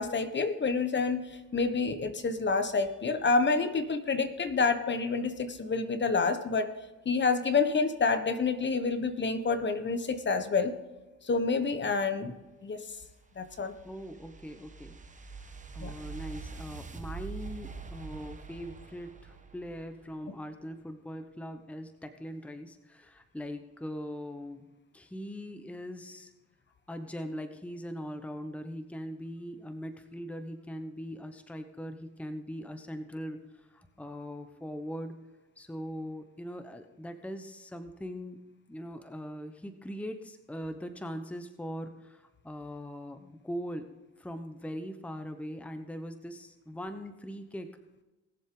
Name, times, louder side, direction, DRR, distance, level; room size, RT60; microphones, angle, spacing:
voice 1, 0.0-6.7 7.0-10.7 11.2-12.3 12.6-12.8 13.4-13.7 15.8-15.9, left 4 dB, 35° left, 9 dB, 1.3 m, -28 dB
sound 1, 12.9-20.2, right 5 dB, 25° right, 1.2 m, -44 dB
voice 2, 13.8-15.0 15.7-24.6 24.9-26.3 26.9-35.2 35.6-38.4 38.7-43.9 44.2-47.7, equal, 5° left, 7 dB, 1.0 m, -41 dB
20.0 x 7.4 x 3.9 m, 1.1 s
cardioid pair, 90°, 30 cm